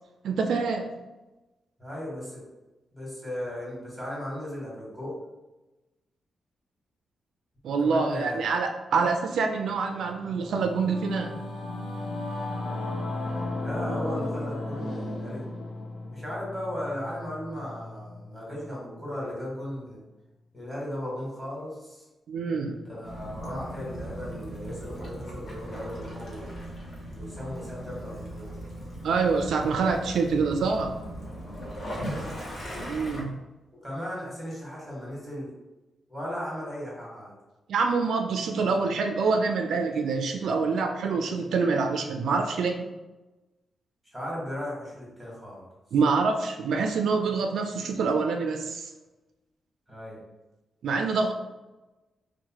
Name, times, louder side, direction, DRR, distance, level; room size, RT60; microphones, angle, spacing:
voice 1, 0.2-0.9 7.6-11.3 22.3-22.8 29.0-31.0 32.9-33.3 37.7-42.8 45.9-48.9 50.8-51.3, right 4 dB, 75° right, 5 dB, 0.3 m, -26 dB
voice 2, 1.8-2.4 2.9-5.2 7.8-8.6 13.6-15.5 16.1-20.0 20.5-22.0 22.8-26.5 27.1-28.5 31.8-32.2 33.8-35.5 36.1-37.3 44.1-45.6 49.9-50.2, equal, ahead, -5 dB, 1.3 m, -36 dB
Singing / Musical instrument, 9.8-19.5, left 2 dB, 70° left, 0.6 m, -35 dB
Waves surf / Splash splatter / Trickle dribble, 23.0-33.2, equal, 40° left, 0.8 m, -38 dB
4.6 x 2.1 x 2.9 m, 1.1 s
wide cardioid pair, 160°, 0 cm